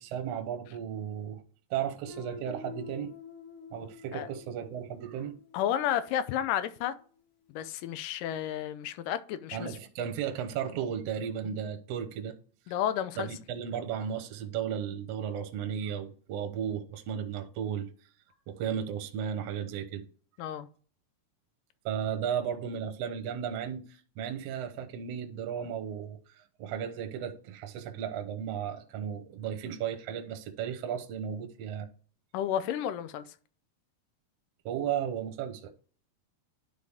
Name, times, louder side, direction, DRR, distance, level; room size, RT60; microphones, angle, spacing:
voice 1, 0.0-1.4 1.7-3.1 3.7-5.3 9.5-12.4 12.7-12.8 13.2-17.9 18.5-20.0 20.4-20.6 21.8-26.2 26.6-31.9 34.6-35.7, right 8 dB, 70° right, 1.7 m, -35 dB
Guitar, 2.1-6.7, left 4 dB, 50° left, 2.3 m, -49 dB
voice 2, 5.5-6.9 7.5-9.8 12.7-13.3 20.4-20.7 32.3-33.2, left 10 dB, 85° left, 2.3 m, -31 dB
11.0 x 4.2 x 3.5 m
omnidirectional pair, 3.7 m